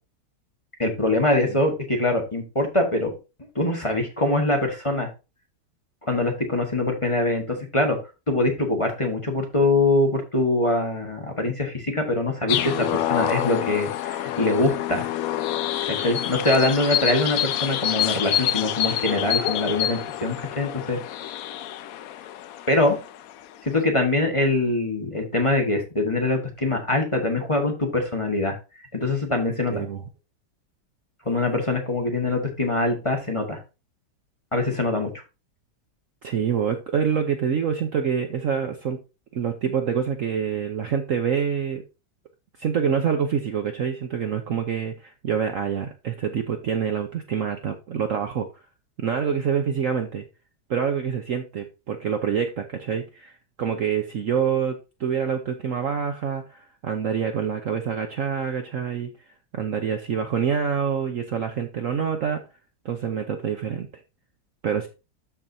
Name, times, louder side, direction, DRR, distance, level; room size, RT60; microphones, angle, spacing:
voice 1, 0.8-3.1 3.5-5.1 6.0-8.0 8.3-15.0 15.9-21.0 22.7-23.0 23.6-28.6 28.9-29.8 31.2-33.6 34.5-35.1, left 2 dB, 20° left, 1 dB, 1.4 m, -23 dB
sound 1, 12.5-23.6, left 11 dB, 70° left, 0.8 m, -27 dB
voice 2, 36.2-39.0 39.3-41.8 42.6-48.5 49.0-50.2 50.7-59.1 59.5-62.4 62.8-63.9 64.6-64.9, right 7 dB, 55° right, 6 dB, 1.0 m, -26 dB
13.0 x 4.8 x 2.7 m, 0.28 s
omnidirectional pair, 2.0 m